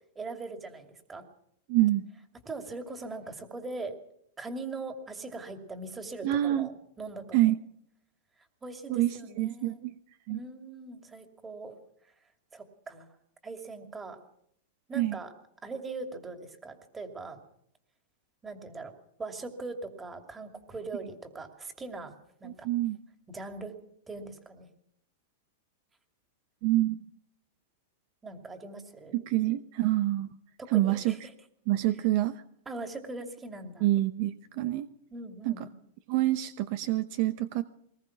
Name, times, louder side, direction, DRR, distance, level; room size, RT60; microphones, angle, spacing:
voice 1, 0.1-1.2 2.4-4.0 4.4-7.4 8.6-9.8 10.3-11.8 12.5-13.1 13.4-14.2 14.9-15.3 15.6-17.4 18.4-18.9 19.2-22.1 22.4-22.7 23.3-23.7 24.1-24.7 28.2-29.2 30.6-31.3 32.7-33.8 35.1-35.7, right 3 dB, 15° right, 6 dB, 2.6 m, -41 dB
voice 2, 1.7-2.0 6.2-6.7 7.3-7.6 8.9-9.9 10.3-10.4 15.0-15.2 22.4-23.0 26.6-27.0 29.1-30.3 30.7-31.1 31.7-32.4 33.8-34.9 35.4-35.7 36.1-37.6, right 15 dB, 50° right, 11 dB, 0.9 m, -27 dB
21.5 x 20.0 x 6.1 m, 0.71 s
supercardioid pair, 150°, 0 cm